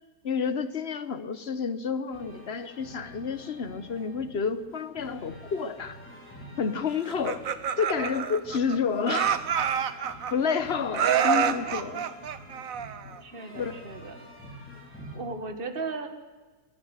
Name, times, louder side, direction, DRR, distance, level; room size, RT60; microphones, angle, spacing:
voice 1, 0.2-6.0 6.6-7.5 7.8-9.4 10.3-12.2 13.6-13.8, left 6 dB, 50° left, 13 dB, 1.3 m, -30 dB
sound 1, 2.1-15.2, equal, 10° left, 5.3 m, -47 dB
Laughter, 7.1-8.8 9.1-10.5 10.9-13.2, right 8 dB, 70° right, 1.5 m, -27 dB
voice 2, 11.1-11.8 13.2-14.2 15.1-16.1, right 4 dB, 40° right, 7 dB, 1.9 m, -37 dB
25.0 x 15.5 x 8.2 m, 1.4 s
omnidirectional pair, 1.5 m